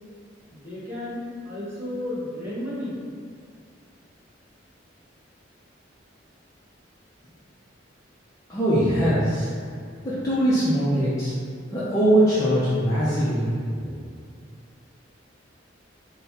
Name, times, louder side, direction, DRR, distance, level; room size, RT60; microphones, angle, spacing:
voice 1, 0.5-3.0, left 1 dB, 10° right, -11 dB, 1.2 m, -33 dB
voice 2, 8.5-9.5 10.0-11.3 11.7-13.5, right 1 dB, 20° left, -11 dB, 0.6 m, -21 dB
4.0 x 2.2 x 4.1 m, 2.2 s
head